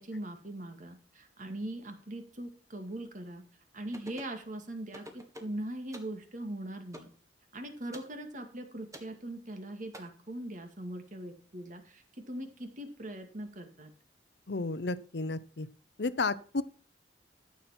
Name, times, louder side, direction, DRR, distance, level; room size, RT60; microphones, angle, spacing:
voice 1, 0.0-3.4 3.7-7.1 7.5-13.9, right 1 dB, 45° right, 6 dB, 2.2 m, -41 dB
sound 1, 3.9-4.4 4.9-5.6 5.9-6.2 6.9-7.2 7.9-8.1 8.9-9.1 9.9-10.0, equal, 20° right, 1.8 m, -47 dB
voice 2, 14.5-15.7 16.0-16.6, left 3 dB, 65° left, 15 dB, 0.8 m, -32 dB
13.5 x 7.2 x 4.4 m, 0.42 s
head